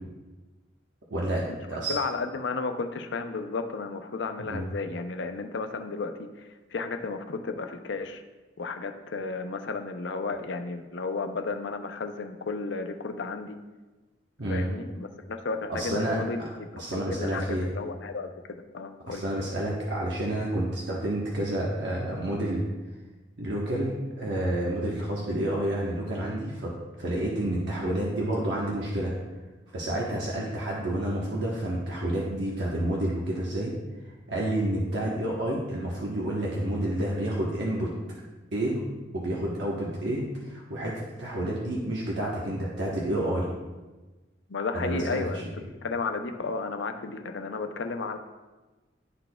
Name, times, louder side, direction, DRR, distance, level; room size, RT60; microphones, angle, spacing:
voice 1, 1.1-2.0 4.4-4.7 14.4-14.7 15.7-16.2 16.8-17.7 19.1-22.6 23.4-29.1 29.7-33.7 34.3-37.9 38.5-38.8 39.1-43.5 44.7-45.2, right 1 dB, 70° right, -4 dB, 1.0 m, -29 dB
voice 2, 1.9-8.2 8.6-13.6 14.5-18.3 18.7-19.2 30.3-30.5 44.5-45.5 45.8-48.2, left 4 dB, 70° left, 7 dB, 0.5 m, -33 dB
11.5 x 4.1 x 2.2 m, 1.2 s
head